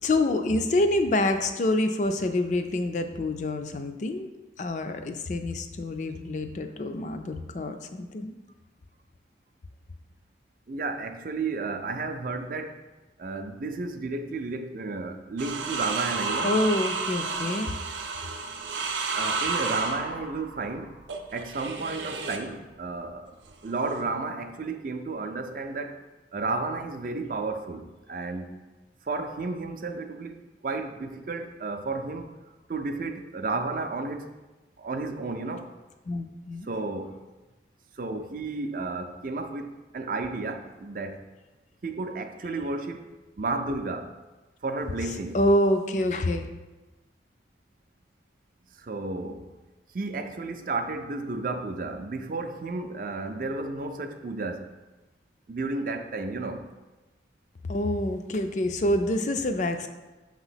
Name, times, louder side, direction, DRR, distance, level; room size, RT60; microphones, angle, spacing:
voice 1, 0.0-4.3 4.6-8.4 16.4-17.7 36.1-36.7 45.3-46.5 57.7-59.9, left 1 dB, 40° left, 0.4 m, -26 dB
voice 2, 10.7-12.8 13.2-16.5 19.2-21.0 21.3-23.3 23.6-26.0 26.3-28.6 29.0-32.3 32.7-34.3 34.8-35.7 36.7-37.2 37.9-41.2 41.8-43.1 43.4-44.2 44.6-45.4 48.7-49.4 49.9-54.7 55.5-56.7, right 3 dB, 50° right, 0.4 m, -32 dB
sound 1, 15.4-22.5 23.5-24.0, right 4 dB, 90° right, 0.6 m, -32 dB
6.0 x 3.0 x 5.6 m
head